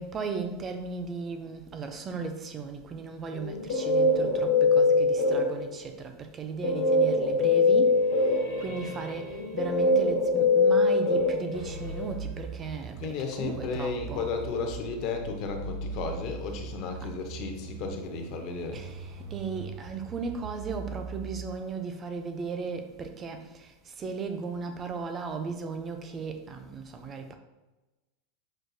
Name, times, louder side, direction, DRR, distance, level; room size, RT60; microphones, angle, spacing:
voice 1, 0.0-14.3 17.0-17.1 18.7-27.4, right 4 dB, 20° right, 0.4 m, -36 dB
Guitar, 3.3-5.8 6.6-12.0, left 3 dB, 70° left, 0.9 m, -23 dB
sound 1, 11.5-21.4, right 5 dB, 80° right, 0.8 m, -40 dB
voice 2, 13.0-18.8, left 5 dB, 40° left, 0.6 m, -34 dB
6.1 x 2.3 x 2.6 m
supercardioid pair, 165°, 0 cm